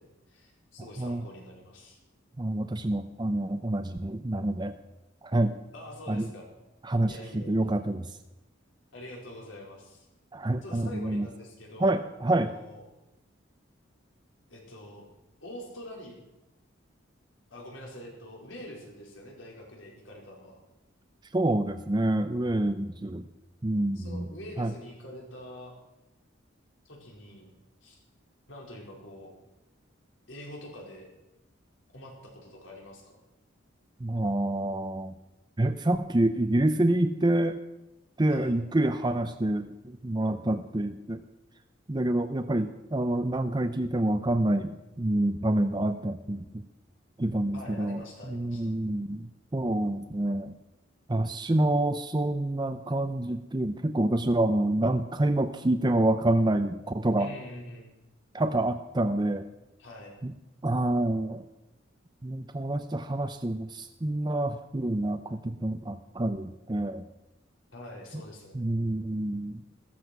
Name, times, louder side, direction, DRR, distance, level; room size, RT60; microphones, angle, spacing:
voice 1, 0.0-2.0 5.7-6.5 7.0-7.6 8.9-10.0 10.6-12.0 12.3-12.8 14.5-15.0 15.4-16.2 17.5-20.6 23.9-25.7 26.8-27.5 27.8-28.0 28.5-29.3 30.3-31.1 31.9-33.2 38.3-38.5 47.5-48.7 57.2-58.0 59.8-60.1 67.7-68.7, left 1 dB, 75° left, -1 dB, 4.8 m, -45 dB
voice 2, 2.4-4.7 5.2-5.6 6.1-6.3 6.8-8.1 10.3-11.3 11.8-12.5 21.3-23.3 23.6-24.3 24.6-24.7 34.0-35.1 35.6-37.6 38.2-41.2 41.9-46.7 47.2-48.0 48.3-50.5 51.1-57.3 58.3-59.5 60.2-60.3 60.6-61.5 62.2-67.0 68.5-69.6, right 1 dB, 20° right, 7 dB, 0.6 m, -27 dB
15.0 x 14.5 x 6.0 m, 0.95 s
head